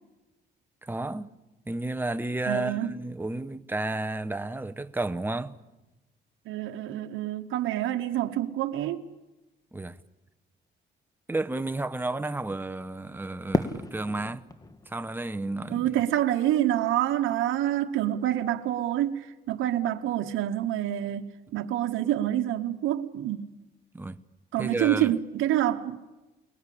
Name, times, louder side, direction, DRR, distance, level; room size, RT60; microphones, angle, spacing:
voice 1, 0.8-1.3 1.7-5.6 9.7-10.0 11.3-14.4 14.9-15.9 23.9-24.2 24.6-25.1, right 2 dB, 10° right, 1.0 m, -32 dB
voice 2, 2.5-2.9 6.5-9.0 15.7-23.5 24.5-26.0, right 12 dB, 85° right, 1.1 m, -27 dB
Fireworks, 13.5-16.6, left 2 dB, 20° left, 1.5 m, -34 dB
29.0 x 20.5 x 8.5 m
cardioid pair, 90°, 20 cm